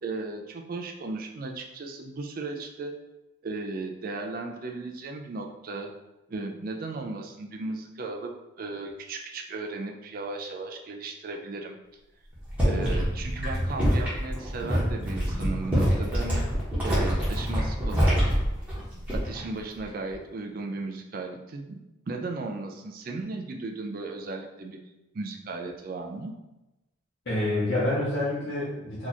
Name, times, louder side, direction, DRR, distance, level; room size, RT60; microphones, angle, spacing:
voice 1, 0.0-2.9 3.4-5.9 6.3-8.3 8.6-11.8 12.6-16.4 16.8-18.4 19.1-21.8 22.1-24.8 25.1-26.3, right 3 dB, 45° right, 3 dB, 0.4 m, -35 dB
sound 1, 12.3-19.5 19.8-20.1, equal, 5° right, 0.9 m, -26 dB
voice 2, 27.3-29.1, left 1 dB, 60° left, -8 dB, 0.9 m, -28 dB
2.9 x 2.4 x 4.0 m, 0.98 s
head